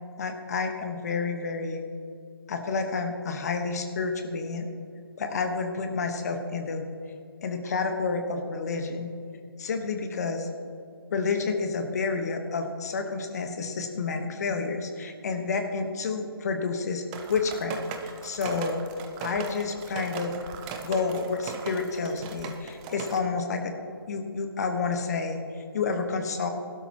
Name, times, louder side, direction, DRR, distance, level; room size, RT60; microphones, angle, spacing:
voice 1, 0.2-1.8 2.5-4.7 5.2-6.9 7.4-9.1 9.6-10.5 11.1-17.0 17.3-18.8 19.2-20.3 20.8-23.7 24.1-26.5, left 4 dB, 40° left, 5 dB, 1.3 m, -29 dB
sound 1, 17.1-23.2, right 6 dB, 15° right, 0.7 m, -38 dB
19.5 x 12.5 x 3.0 m, 2.4 s
figure-of-eight pair, 150°, 13 cm